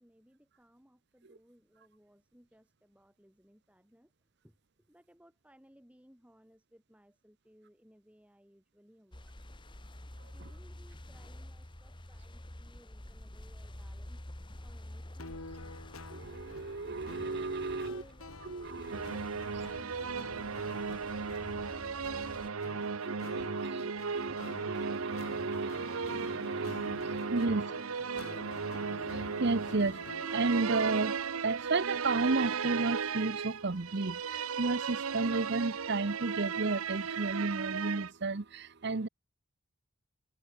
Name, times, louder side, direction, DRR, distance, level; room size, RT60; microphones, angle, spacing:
voice 1, 0.0-9.4 10.2-14.3 14.6-15.8 17.6-18.4, equal, 5° right, 6.2 m, -63 dB
sound 1, 9.1-22.5, left 1 dB, 25° left, 1.5 m, -49 dB
sound 2, 15.2-30.4, left 2 dB, 90° left, 4.5 m, -49 dB
voice 2, 16.1-18.0 18.5-19.0 23.0-27.7 28.1-39.1, right 3 dB, 55° right, 0.8 m, -33 dB
sound 3, 18.9-38.1, right 5 dB, 80° right, 0.8 m, -36 dB
head